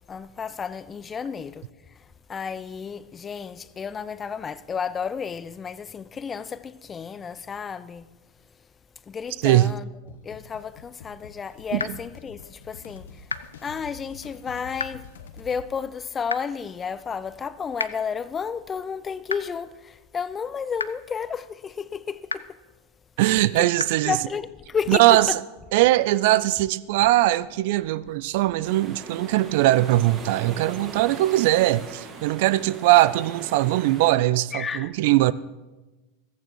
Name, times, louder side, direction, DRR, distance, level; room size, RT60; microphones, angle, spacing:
voice 1, 0.1-1.6 2.3-8.1 9.1-9.9 10.2-13.1 13.6-15.1 15.4-22.4 23.6-23.7 24.1-25.2 34.5-34.9, left 6 dB, 25° left, 0.5 m, -32 dB
voice 2, 9.4-9.8 11.7-12.0 23.2-24.2 24.9-25.4 25.7-35.3, right 16 dB, 55° right, 0.4 m, -20 dB
sound 1, 10.1-15.7, left 6 dB, 70° left, 1.0 m, -46 dB
sound 2, 11.8-11.9 13.3-13.4 14.8-14.9 16.3-16.4 17.8-17.9 19.3-19.4 20.8-20.9 22.3-22.4 23.8-23.9, left 4 dB, 85° left, 0.4 m, -27 dB
sound 3, 28.6-34.2, right 4 dB, 35° right, 2.1 m, -40 dB
15.0 x 14.0 x 4.6 m
figure-of-eight pair, 85°, 0 cm